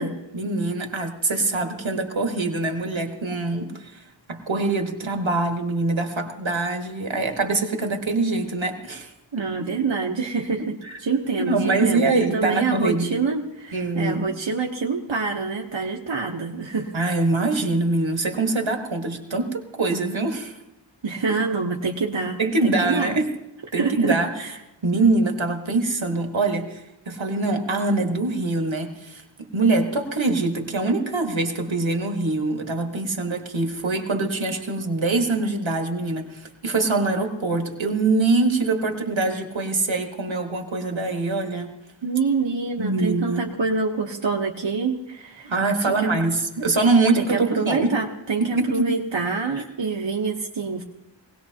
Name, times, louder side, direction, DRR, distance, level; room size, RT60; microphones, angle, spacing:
voice 1, 0.3-4.0 4.3-9.1 10.8-11.0 11.4-13.2 13.7-14.3 16.9-20.6 22.4-23.3 23.7-24.5 24.8-26.8 27.1-29.2 29.5-41.7 42.8-43.5 45.4-47.9 48.4-48.9, right 3 dB, 90° right, 4 dB, 1.6 m, -24 dB
voice 2, 9.3-17.0 21.0-23.2 23.8-24.5 42.0-45.5 45.8-46.1 47.1-50.8, right 4 dB, 75° right, 0 dB, 1.1 m, -26 dB
22.5 x 18.0 x 2.8 m, 0.94 s
wide cardioid pair, 50°, 45 cm